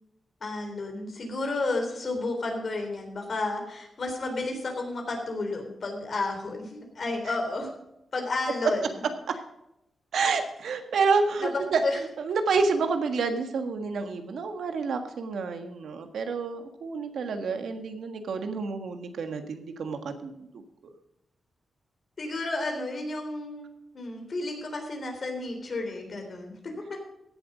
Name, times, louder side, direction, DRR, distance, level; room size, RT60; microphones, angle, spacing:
voice 1, 0.4-7.7 8.1-9.1 10.2-10.3 11.4-11.5 11.8-12.0 22.2-23.7 23.9-27.0, left 2 dB, 50° left, 3 dB, 3.7 m, -32 dB
voice 2, 10.1-20.6, right 4 dB, 85° right, 7 dB, 1.5 m, -29 dB
16.0 x 7.8 x 5.1 m, 0.84 s
wide cardioid pair, 110°, 0 cm